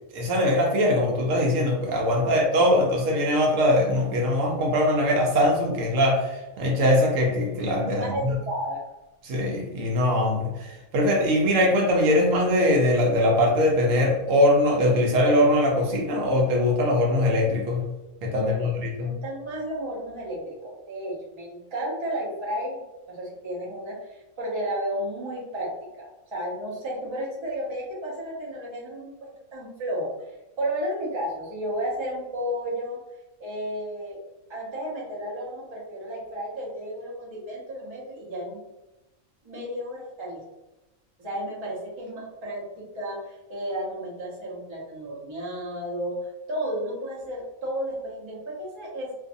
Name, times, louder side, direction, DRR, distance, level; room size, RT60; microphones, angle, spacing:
voice 1, 0.1-8.3 9.2-17.8 18.2-19.2, left 1 dB, 75° right, 0 dB, 1.0 m, -22 dB
voice 2, 7.9-8.8 18.3-18.7 19.0-22.8 23.1-25.7 26.0-30.1 30.6-33.0 33.4-34.2 34.5-38.6 39.4-40.4 41.2-46.2 46.5-49.1, equal, 30° right, -6 dB, 0.7 m, -33 dB
2.5 x 2.5 x 2.5 m, 1.0 s
omnidirectional pair, 1.4 m